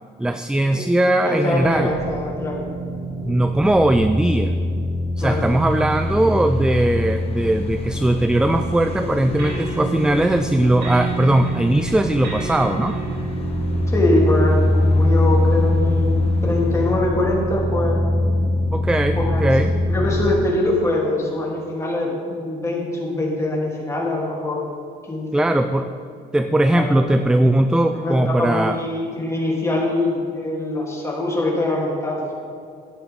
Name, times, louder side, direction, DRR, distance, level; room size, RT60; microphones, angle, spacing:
voice 1, 0.2-1.9 3.2-4.6 5.2-13.0 18.7-19.7 25.3-25.9 26.3-28.8, right 1 dB, 5° right, 8 dB, 0.4 m, -19 dB
voice 2, 1.2-2.6 5.2-5.4 13.9-16.1 16.4-18.0 19.1-24.7 25.1-25.7 26.7-26.9 27.9-32.2, left 2 dB, 15° left, -4 dB, 3.3 m, -23 dB
sound 1, 1.4-20.3, left 1 dB, 45° right, 2.2 m, -23 dB
sound 2, 5.2-16.9, left 4 dB, 35° left, 1.5 m, -40 dB
sound 3, 8.8-14.2, right 1 dB, 70° right, 3.2 m, -35 dB
12.5 x 10.5 x 3.7 m, 2.4 s
cardioid pair, 110°, 17 cm